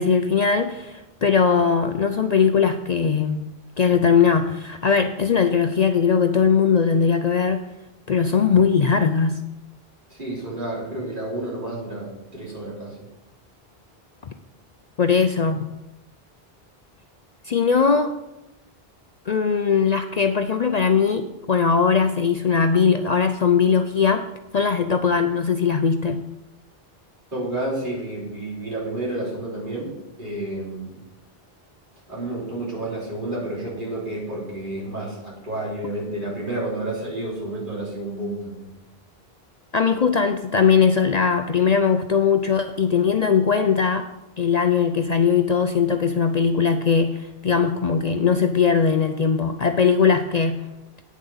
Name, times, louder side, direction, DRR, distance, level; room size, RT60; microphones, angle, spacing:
voice 1, 0.0-3.5 3.8-7.6 8.1-9.4 15.0-15.6 17.5-18.1 19.3-24.2 24.5-26.2 39.7-44.1 44.4-50.6, left 6 dB, 50° left, 8 dB, 0.6 m, -20 dB
voice 2, 10.1-13.1 27.3-31.0 32.1-38.7, right 1 dB, 55° right, -5 dB, 3.7 m, -30 dB
9.2 x 7.4 x 5.5 m, 0.92 s
omnidirectional pair, 1.0 m